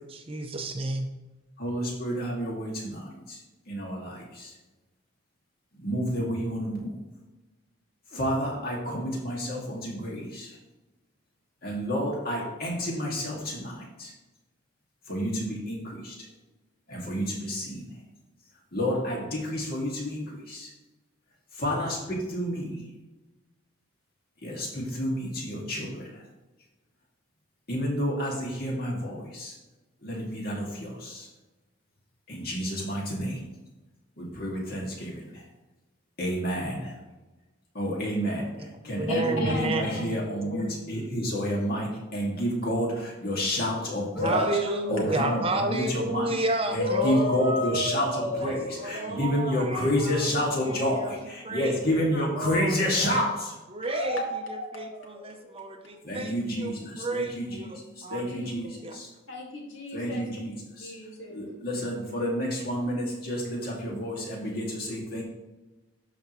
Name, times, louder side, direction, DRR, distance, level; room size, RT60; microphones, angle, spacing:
voice 1, 0.1-1.1 39.0-40.1 44.2-47.4 48.3-51.2 51.4-52.9 53.7-59.0, right 2 dB, 25° right, 5 dB, 0.6 m, -32 dB
voice 2, 1.6-3.4 3.7-4.5 5.8-7.0 8.1-10.6 11.6-14.1 15.1-16.1 16.9-17.9 18.7-20.7 21.5-22.8 24.4-26.2 27.7-29.5 30.0-31.3 32.3-33.4 34.2-35.4 36.2-37.0 37.7-38.4 38.8-44.4 44.9-46.3 46.7-53.5 56.0-59.1 59.9-60.9 61.3-65.2, equal, 45° left, -3 dB, 2.1 m, -30 dB
voice 3, 39.1-39.7 44.1-45.6 46.8-49.3 49.8-49.9 50.5-51.1 52.1-52.2 52.9-53.2 53.8-55.5 57.4-57.5 58.1-58.5 59.3-60.3 60.8-61.6, left 2 dB, 75° left, -2 dB, 2.0 m, -33 dB
12.5 x 4.9 x 3.1 m, 1.1 s
head